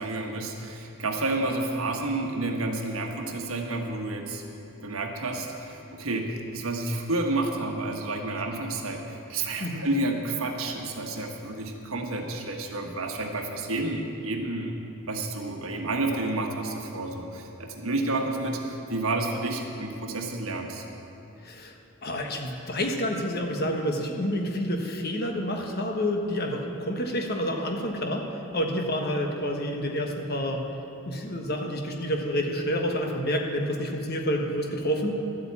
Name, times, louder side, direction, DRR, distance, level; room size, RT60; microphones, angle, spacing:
voice 1, 0.0-4.4 4.8-14.7 15.1-20.8, right 2 dB, 75° right, 2 dB, 1.5 m, -30 dB
voice 2, 21.4-21.8 22.0-30.6 31.1-35.1, equal, 45° left, 2 dB, 1.3 m, -29 dB
12.5 x 8.2 x 8.6 m, 2.9 s
head